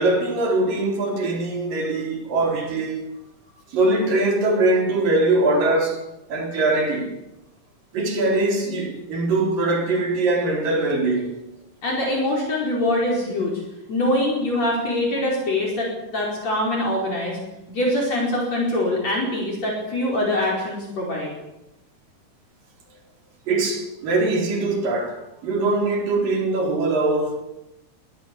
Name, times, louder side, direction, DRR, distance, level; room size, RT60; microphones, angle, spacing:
voice 1, 0.0-3.1 3.7-6.0 6.3-7.1 7.9-11.4 23.5-27.4, right 2 dB, 75° right, 5.9 m, -22 dB
voice 2, 11.8-13.5 13.9-17.4 17.7-21.3, left 1 dB, 50° left, 5.9 m, -23 dB
23.0 x 17.0 x 8.5 m
omnidirectional pair, 3.9 m